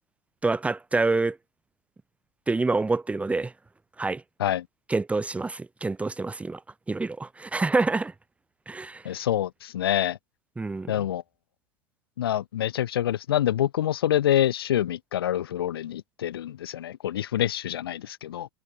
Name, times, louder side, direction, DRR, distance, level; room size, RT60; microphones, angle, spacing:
voice 1, 0.4-1.4 2.5-3.5 4.0-4.2 4.9-6.6 6.9-8.1 8.7-9.0 10.6-11.0, right 3 dB, 10° right, 2.5 m, -27 dB
voice 2, 9.0-10.2 10.9-11.2 12.2-18.5, left 11 dB, 80° left, 3.4 m, -26 dB
hypercardioid pair, 105°, 12 cm